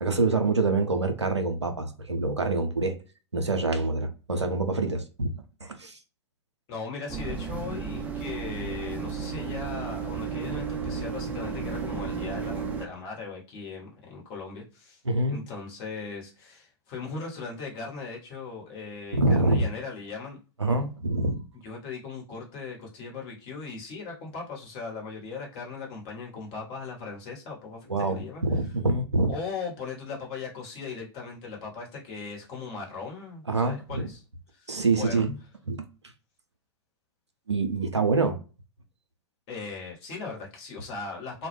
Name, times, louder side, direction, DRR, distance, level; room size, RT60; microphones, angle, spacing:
voice 1, 0.0-3.0 3.3-5.3 5.6-6.0 15.1-15.4 19.2-19.6 20.6-21.4 27.9-29.3 33.5-34.1 34.7-35.3 35.7-35.8 37.5-38.4, right 3 dB, 90° right, 0.5 m, -26 dB
voice 2, 6.7-15.0 15.3-20.4 21.6-28.4 29.3-34.2 34.5-35.2 39.5-41.5, left 4 dB, 40° left, 1.0 m, -38 dB
sound 1, 7.1-12.9, right 5 dB, 10° right, 0.4 m, -33 dB
2.1 x 2.1 x 3.0 m
figure-of-eight pair, 95°, 14 cm